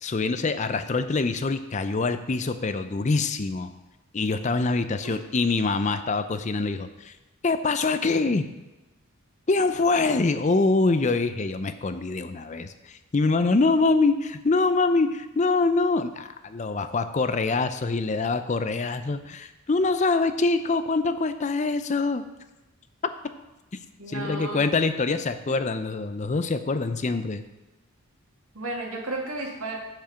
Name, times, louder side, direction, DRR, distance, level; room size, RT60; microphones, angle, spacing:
voice 1, 0.0-3.7 4.1-7.1 7.4-8.5 9.5-22.2 24.1-27.4, left 3 dB, 35° left, 10 dB, 0.5 m, -24 dB
voice 2, 24.0-24.6 28.5-29.8, right 2 dB, 85° right, 0 dB, 2.0 m, -33 dB
7.6 x 7.1 x 5.7 m, 1.0 s
head